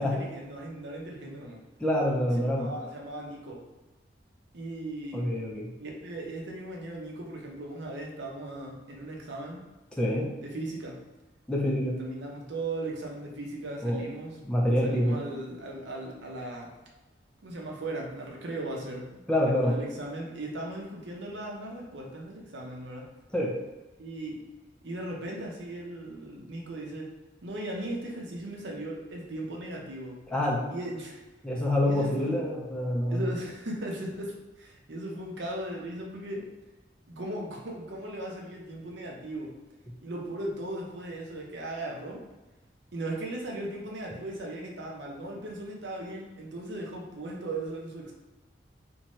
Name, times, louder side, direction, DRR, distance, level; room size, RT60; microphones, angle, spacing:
voice 1, 0.0-1.6 2.6-3.6 4.5-5.3 5.8-9.6 10.4-11.0 12.0-14.4 14.8-16.7 17.4-23.1 24.0-24.4 24.8-27.1 27.4-30.2 30.7-31.2 31.8-32.4 33.1-36.5 37.1-39.5 40.0-42.2 42.9-48.1, right 1 dB, 75° right, -1 dB, 0.6 m, -37 dB
voice 2, 1.8-2.7 5.1-5.7 10.0-10.3 11.5-12.0 13.8-14.0 14.4-15.2 19.3-19.8 23.3-23.6 30.3-30.7 31.4-33.3, left 1 dB, 5° left, -3 dB, 0.4 m, -26 dB
2.7 x 2.2 x 3.0 m, 1.1 s
head